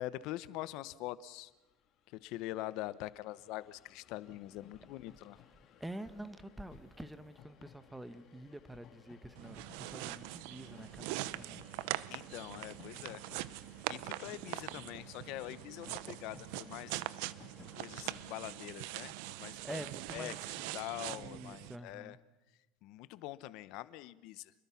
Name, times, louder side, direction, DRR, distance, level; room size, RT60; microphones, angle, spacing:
voice 1, 0.0-1.5 2.2-5.4 12.1-13.2 13.9-17.0 17.7-22.2 22.8-24.5, left 16 dB, 60° left, 16 dB, 0.9 m, -44 dB
Train, 1.3-1.4 1.6-20.0, left 8 dB, 40° left, 3.2 m, -60 dB
voice 2, 5.8-11.6 19.6-20.7 21.1-22.2, right 1 dB, 5° right, 13 dB, 1.2 m, -47 dB
sound 1, 9.4-21.8, right 17 dB, 75° right, 0.8 m, -42 dB
28.5 x 21.0 x 5.9 m, 1.1 s
cardioid pair, 135°, 0 cm